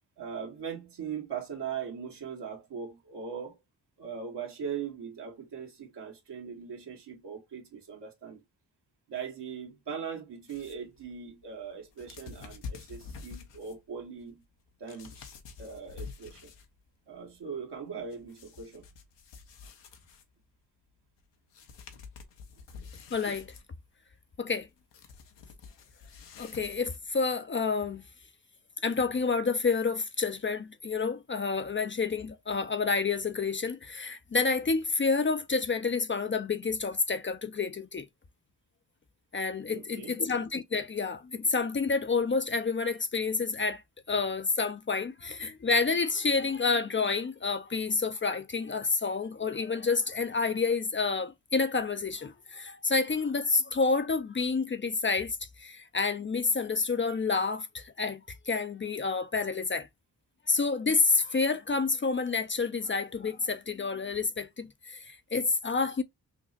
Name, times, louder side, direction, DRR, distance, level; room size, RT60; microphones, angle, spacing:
voice 1, 0.2-3.6 4.0-8.4 9.1-14.4 14.8-15.3 15.6-16.5 17.1-18.9 39.7-40.2, right 7 dB, 70° right, 1.6 m, -40 dB
sound 1, 10.5-16.9 17.2-20.5 21.2-21.3 21.5-27.2, left 5 dB, 80° left, 0.9 m, -48 dB
voice 2, 23.1-23.5 24.4-24.7 26.4-28.0 28.8-38.1 39.3-59.9 60.5-66.0, left 4 dB, 30° left, 0.5 m, -29 dB
5.9 x 2.1 x 2.5 m
supercardioid pair, 50°, 42 cm